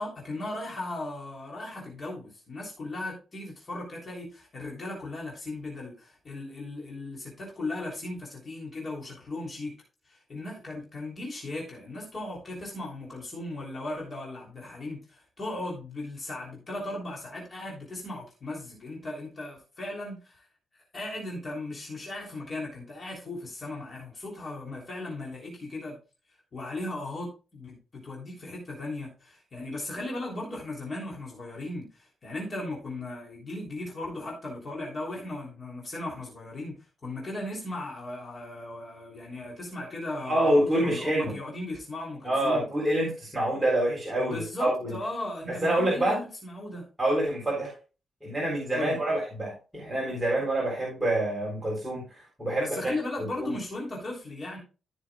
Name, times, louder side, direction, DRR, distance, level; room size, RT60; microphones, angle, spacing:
voice 1, 0.0-9.7 10.0-20.5 20.7-26.0 26.5-42.6 44.2-46.9 48.7-49.0 52.6-54.6, left 2 dB, 35° left, -3 dB, 3.2 m, -37 dB
voice 2, 40.3-41.3 42.2-44.9 45.5-46.2 47.0-47.7 48.2-52.7 53.4-53.5, right 1 dB, 10° right, -4 dB, 3.7 m, -26 dB
14.5 x 6.6 x 2.3 m, 0.33 s
wide cardioid pair, 160°, 0 cm